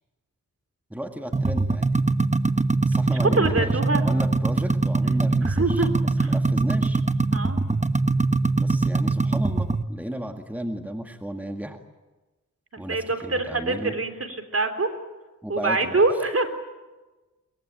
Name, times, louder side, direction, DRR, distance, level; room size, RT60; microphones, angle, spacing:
voice 1, 0.9-1.9 2.8-5.9 6.2-7.0 8.6-11.8 12.8-14.0 15.4-16.0, equal, 5° right, 5 dB, 2.0 m, -34 dB
sound 1, 1.3-9.8, right 3 dB, 20° right, 1.0 m, -22 dB
voice 2, 3.1-4.0 5.5-5.9 6.2-6.3 7.3-7.6 12.9-14.9 15.5-16.5, right 3 dB, 45° right, 8 dB, 3.5 m, -24 dB
23.5 x 21.5 x 9.0 m, 1.2 s
cardioid pair, 60°, 32 cm